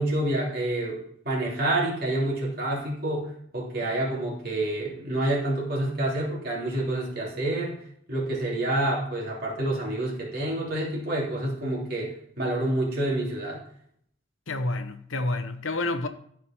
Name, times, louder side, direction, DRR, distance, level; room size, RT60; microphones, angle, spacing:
voice 1, 0.0-7.8 8.1-13.6, right 1 dB, 50° right, 3.2 m, -28 dB
voice 2, 14.5-16.1, left 2 dB, 75° left, 0.9 m, -29 dB
14.0 x 4.9 x 4.5 m
head